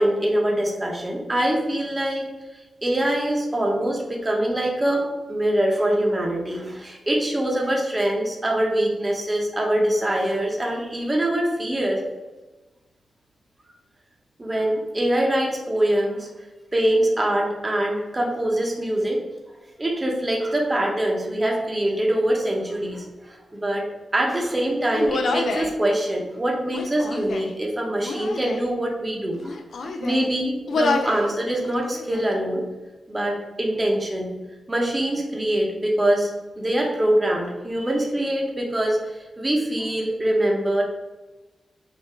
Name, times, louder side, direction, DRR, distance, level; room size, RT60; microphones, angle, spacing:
voice 1, 0.0-2.3 2.5-12.0 14.4-16.3 16.7-19.2 19.8-23.8 24.1-32.6 33.1-34.3 34.7-40.8, right 1 dB, 20° right, -1 dB, 0.9 m, -24 dB
Human voice, 24.9-25.7 26.7-27.6 28.0-28.7 29.3-30.3 30.7-31.3 31.6-32.3, left 3 dB, 75° left, 0.5 m, -27 dB
5.6 x 2.6 x 3.5 m, 1.1 s
wide cardioid pair, 125°, 0 cm